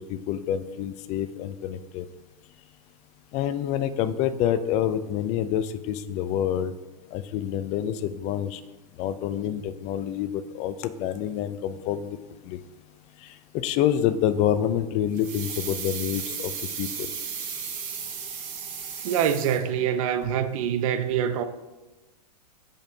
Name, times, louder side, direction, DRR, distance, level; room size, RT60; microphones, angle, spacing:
voice 1, 0.1-2.0 3.3-6.7 7.1-8.6 9.0-12.2 12.4-12.6 13.2-16.5 16.8-17.1, left 10 dB, 30° left, 0.5 m, -27 dB
sound 1, 15.1-20.0 20.2-20.3, right 6 dB, 35° right, 2.2 m, -35 dB
voice 2, 19.0-21.4, right 9 dB, 55° right, 0.9 m, -25 dB
15.5 x 5.3 x 2.8 m
hypercardioid pair, 125°, 21 cm